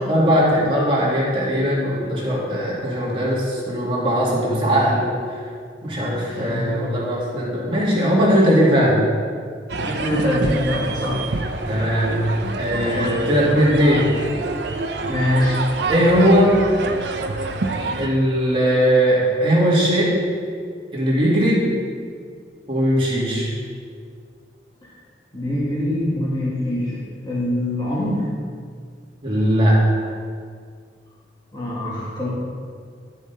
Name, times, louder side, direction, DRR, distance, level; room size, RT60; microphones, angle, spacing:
voice 1, 0.1-5.1 5.8-9.0 11.7-12.2 12.6-14.1 15.9-16.5 18.0-20.1 20.9-21.7 22.7-23.5 29.2-29.8, equal, 30° right, -6 dB, 2.4 m, -19 dB
voice 2, 6.3-6.7 9.9-11.2 12.8-13.2 15.1-15.6 24.8-24.9 25.3-27.0 27.3-28.2 31.5-32.3, left 1 dB, 25° left, -8 dB, 2.1 m, -23 dB
sound 1, 9.7-18.1, right 3 dB, 75° right, 0.6 m, -27 dB
11.0 x 7.0 x 4.2 m, 2.1 s
head